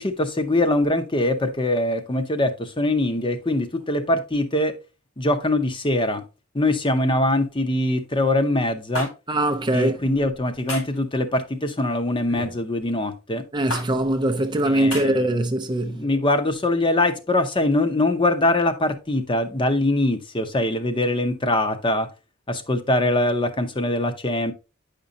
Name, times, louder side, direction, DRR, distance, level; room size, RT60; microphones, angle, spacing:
voice 1, 0.0-4.8 5.2-6.2 6.5-9.1 9.7-13.4 14.7-15.3 15.8-22.1 22.5-24.5, left 1 dB, 20° left, 0.7 m, -23 dB
sound 1, 8.9-9.1 10.7-11.0 12.3-12.6 13.7-13.9 14.9-15.1, left 1 dB, 85° left, 3.7 m, -30 dB
voice 2, 9.3-10.0 13.5-16.1, right 1 dB, 20° right, 0.5 m, -22 dB
9.3 x 5.2 x 2.7 m
head